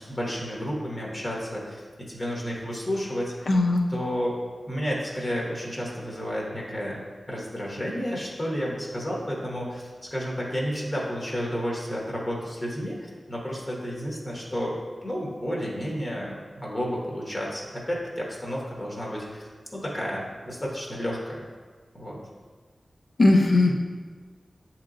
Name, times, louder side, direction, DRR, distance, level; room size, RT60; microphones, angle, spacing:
voice 1, 0.0-1.8 2.1-3.6 3.9-4.4 4.7-21.4 21.9-22.2, equal, 35° left, -4 dB, 1.0 m, -31 dB
voice 2, 3.5-3.8 23.2-23.7, left 2 dB, 75° left, 1 dB, 0.5 m, -18 dB
7.2 x 2.9 x 2.5 m, 1.5 s
wide cardioid pair, 55°, 0 cm